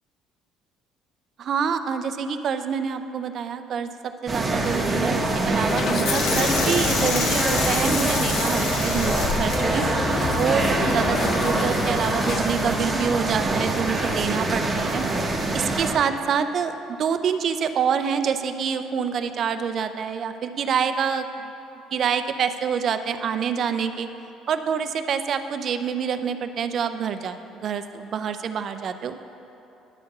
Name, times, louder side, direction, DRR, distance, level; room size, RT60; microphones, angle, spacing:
voice 1, 1.4-9.8 10.3-15.0 15.5-21.5 21.9-24.1 24.5-29.1, right 7 dB, 50° right, 10 dB, 0.4 m, -26 dB
sound 1, 4.3-15.9, right 2 dB, 25° right, 1.0 m, -24 dB
sound 2, 5.1-12.9, left 7 dB, 50° left, 0.3 m, -30 dB
sound 3, 6.1-11.2, left 3 dB, 80° left, 1.3 m, -29 dB
10.5 x 4.5 x 6.6 m, 3.0 s
cardioid pair, 115°, 0 cm